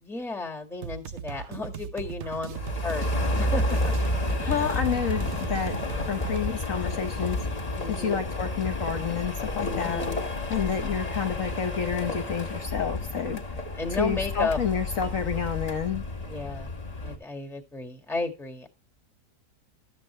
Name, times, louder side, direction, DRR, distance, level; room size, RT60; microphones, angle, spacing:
voice 1, 0.0-3.9 4.4-4.8 7.7-8.3 9.6-10.2 13.7-14.6 16.3-16.7 17.0-18.7, left 3 dB, ahead, 4 dB, 1.6 m, -34 dB
sound 1, 0.8-6.4, right 8 dB, 55° right, 0.9 m, -38 dB
sound 2, 2.5-17.2, left 2 dB, 25° left, 1.7 m, -30 dB
voice 2, 4.3-7.4 7.9-10.0 10.5-13.4 14.0-16.0, left 7 dB, 55° left, 6 dB, 1.2 m, -29 dB
13.0 x 7.9 x 3.2 m, 0.28 s
omnidirectional pair, 1.8 m